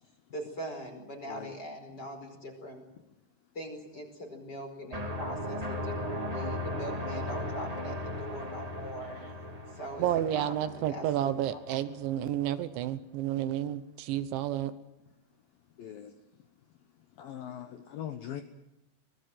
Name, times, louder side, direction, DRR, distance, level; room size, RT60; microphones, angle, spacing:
voice 1, 0.3-2.8 3.5-9.2 9.7-10.1 10.3-11.8, equal, 20° left, 4 dB, 5.1 m, -41 dB
sound 1, 4.9-11.6, left 1 dB, 60° right, 0.4 m, -37 dB
voice 2, 9.0-9.3 15.7-16.2 17.1-18.4, left 10 dB, 70° left, 7 dB, 2.4 m, -42 dB
voice 3, 10.0-14.7, right 11 dB, 80° right, 12 dB, 3.3 m, -31 dB
24.0 x 20.5 x 7.7 m, 0.92 s
omnidirectional pair, 5.4 m